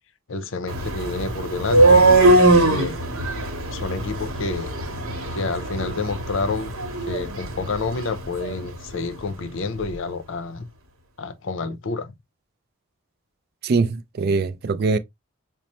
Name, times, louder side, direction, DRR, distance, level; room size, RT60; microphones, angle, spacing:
voice 1, 0.3-2.0 2.5-3.0 3.7-4.7 5.3-6.7 7.1-10.7 11.2-12.1, left 3 dB, 65° left, 0.5 m, -29 dB
sound 1, 0.7-8.6, right 2 dB, 70° right, 1.0 m, -20 dB
voice 2, 13.6-15.0, right 4 dB, 45° right, 0.3 m, -22 dB
5.2 x 2.0 x 2.9 m
head